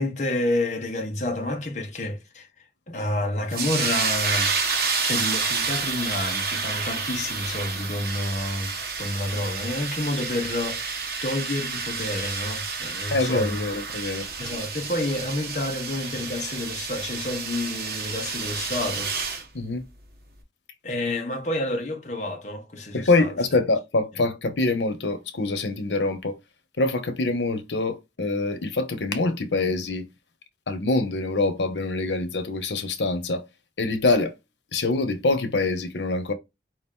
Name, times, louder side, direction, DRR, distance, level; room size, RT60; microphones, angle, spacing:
voice 1, 0.0-4.6 5.0-13.7 14.4-19.3 20.8-23.3, left 1 dB, 40° left, 0.9 m, -29 dB
sound 1, 3.5-19.4, right 5 dB, 60° right, 1.3 m, -29 dB
voice 2, 13.1-14.3 19.5-19.8 22.9-26.4 26.8-30.1 30.7-33.5 33.8-34.3 34.7-36.3, left 2 dB, 90° left, 0.9 m, -25 dB
4.8 x 3.0 x 3.6 m
head